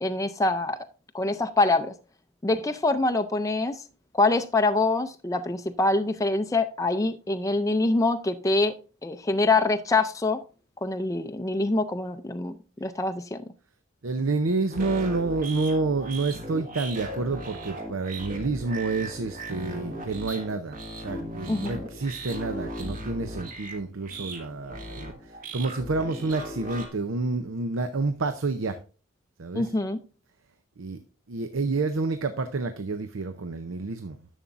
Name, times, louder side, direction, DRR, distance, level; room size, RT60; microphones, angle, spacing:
voice 1, 0.0-0.8 1.1-1.9 2.4-3.8 4.1-8.8 9.0-10.4 10.8-13.4 21.5-21.9 29.5-30.0, left 2 dB, 15° left, 0.4 m, -25 dB
voice 2, 14.0-28.8 29.4-29.7 30.8-31.0 31.3-34.2, right 3 dB, 70° right, 0.6 m, -29 dB
sound 1, 14.7-26.9, right 1 dB, 40° right, 1.5 m, -37 dB
11.0 x 7.0 x 2.5 m
head